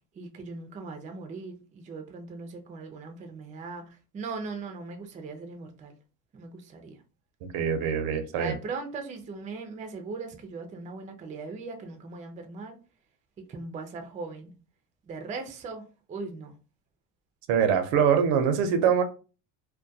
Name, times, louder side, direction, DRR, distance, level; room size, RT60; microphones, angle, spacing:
voice 1, 0.2-3.9 4.1-6.0 6.3-7.0 8.4-12.8 13.5-14.5 15.1-16.5, right 4 dB, 20° right, 0.3 m, -39 dB
voice 2, 7.4-8.5 17.5-19.0, right 7 dB, 85° right, 0.7 m, -24 dB
2.3 x 2.2 x 2.6 m
cardioid pair, 125°, 42 cm